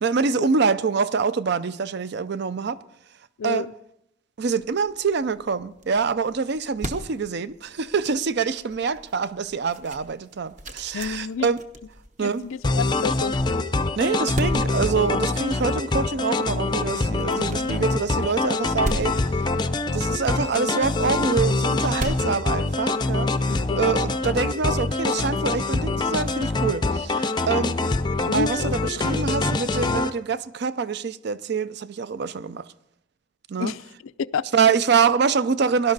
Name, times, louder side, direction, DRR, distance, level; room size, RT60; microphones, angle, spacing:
voice 1, 0.0-2.8 3.4-3.6 4.4-11.6 12.2-12.5 14.0-19.4 19.9-27.8 28.3-32.7 33.5-33.7 34.5-35.9, right 5 dB, 55° right, 0.5 m, -25 dB
sound 1, 4.5-23.3, equal, 40° right, 1.0 m, -39 dB
voice 2, 10.9-11.5 12.2-13.4 17.5-17.9 23.5-23.9 28.2-29.1 33.6-34.5, left 6 dB, 85° left, 0.4 m, -30 dB
sound 2, 12.6-30.1, left 3 dB, 20° left, 0.5 m, -24 dB
17.5 x 11.5 x 4.0 m
head